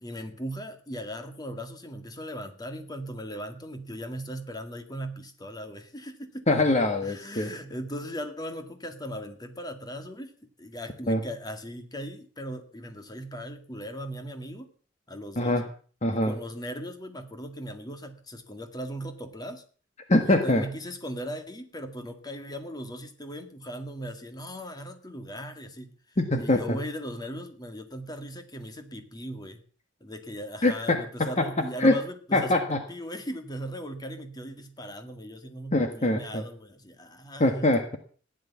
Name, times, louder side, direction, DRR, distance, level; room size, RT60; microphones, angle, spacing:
voice 1, 0.0-6.5 7.0-14.7 15.1-15.6 16.1-19.6 20.2-29.6 30.0-37.7, equal, 20° left, 7 dB, 2.0 m, -38 dB
voice 2, 6.5-7.5 11.1-11.2 15.3-15.7 16.0-16.3 20.1-20.6 26.2-26.8 30.6-31.5 31.8-32.0 32.3-32.8 35.7-36.4 37.4-38.0, left 2 dB, 35° left, 6 dB, 1.5 m, -23 dB
15.5 x 10.5 x 7.2 m, 0.43 s
head